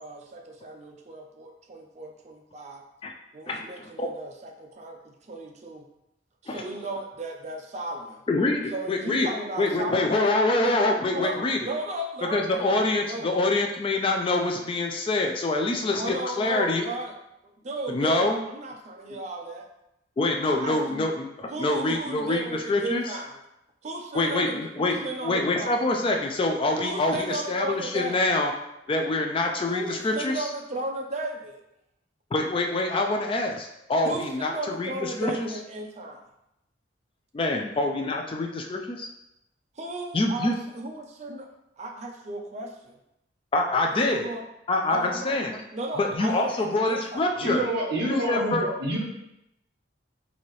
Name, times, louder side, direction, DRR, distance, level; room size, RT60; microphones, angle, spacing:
voice 1, 0.0-2.8 3.3-5.9 6.4-8.2 8.7-10.3 10.7-10.8 11.1-12.8 13.1-13.3 16.0-17.1 17.6-19.7 20.4-21.1 21.5-23.4 23.8-25.8 26.8-28.2 29.7-31.6 34.0-36.2 39.8-41.5 41.8-42.9 43.9-44.4 44.9-45.4 45.7-47.3, right 2 dB, 40° right, 2 dB, 0.5 m, -35 dB
voice 2, 3.5-4.1 6.5-6.7 8.3-9.3 9.6-11.6 12.3-16.8 17.9-18.4 20.2-23.0 24.1-28.5 28.9-30.5 32.3-35.5 37.3-39.1 40.1-40.6 43.5-44.3 44.7-45.6 46.0-47.7 48.0-48.7, left 2 dB, 30° left, 2 dB, 0.3 m, -25 dB
voice 3, 47.4-49.0, right 1 dB, 60° right, -1 dB, 0.8 m, -27 dB
4.1 x 2.7 x 3.1 m, 0.85 s
head